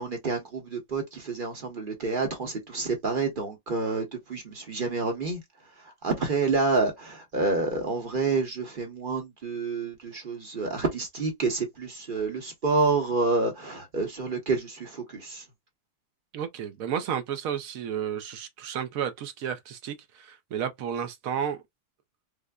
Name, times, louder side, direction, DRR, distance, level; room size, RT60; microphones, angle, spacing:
voice 1, 0.0-5.4 5.8-15.4, right 3 dB, 40° right, 1.0 m, -28 dB
voice 2, 16.3-21.6, right 8 dB, 70° right, 0.9 m, -32 dB
4.8 x 2.1 x 2.3 m
omnidirectional pair, 1.7 m